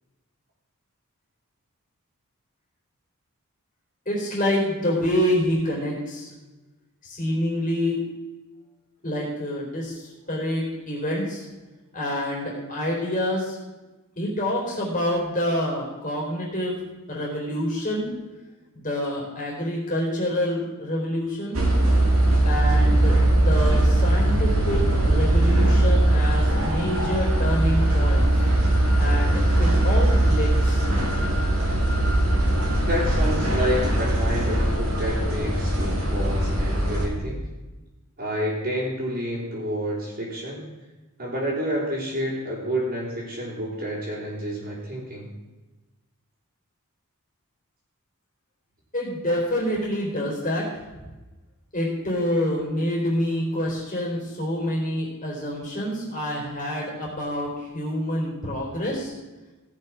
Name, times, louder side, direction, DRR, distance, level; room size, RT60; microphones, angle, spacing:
voice 1, 4.1-6.3 7.0-8.0 9.0-11.4 11.9-13.6 14.2-16.8 17.1-18.1 18.7-21.6 22.4-28.5 29.0-30.8 48.9-50.8 51.7-59.1, equal, 35° left, -3 dB, 4.0 m, -27 dB
sound 1, 21.5-37.1, right 1 dB, 70° right, 2.8 m, -20 dB
voice 2, 32.8-37.5 38.2-40.6 41.2-45.3, equal, 40° right, -10 dB, 4.0 m, -29 dB
17.0 x 6.7 x 6.3 m, 1.1 s
head